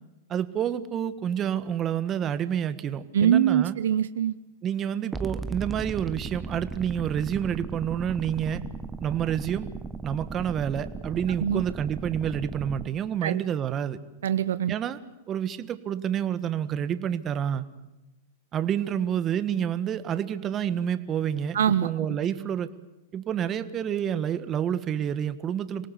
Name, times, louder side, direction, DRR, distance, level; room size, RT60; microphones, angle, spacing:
voice 1, 0.3-3.7 4.6-8.6 9.0-9.7 10.0-14.0 14.7-15.0 15.3-17.7 18.5-22.7 23.1-25.9, right 9 dB, 30° right, 12 dB, 1.5 m, -28 dB
voice 2, 3.1-4.3 11.4-11.6 13.2-13.4 14.2-14.7 21.5-21.9, right 9 dB, 75° right, 13 dB, 0.9 m, -23 dB
sound 1, 5.1-12.9, right 4 dB, 10° right, 1.2 m, -37 dB
26.0 x 18.0 x 8.2 m, 1.0 s
hypercardioid pair, 115°, 0 cm